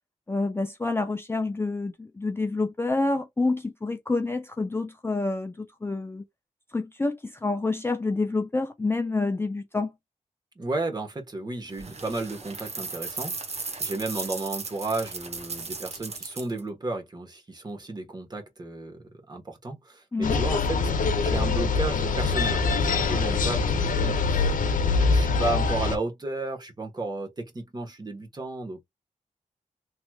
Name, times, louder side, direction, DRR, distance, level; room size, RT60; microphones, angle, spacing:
voice 1, 0.3-6.2 6.7-9.9 20.1-20.4, left 3 dB, 15° left, 0.4 m, -28 dB
voice 2, 10.6-19.0 19.3-20.8 21.2-24.6 24.8-28.8, right 2 dB, 30° right, 1.2 m, -33 dB
sound 1, 11.7-16.6, right 4 dB, 50° right, 1.0 m, -36 dB
sound 2, 20.2-26.0, left 4 dB, 85° left, 0.7 m, -24 dB
3.1 x 3.0 x 2.3 m
wide cardioid pair, 120°, 14 cm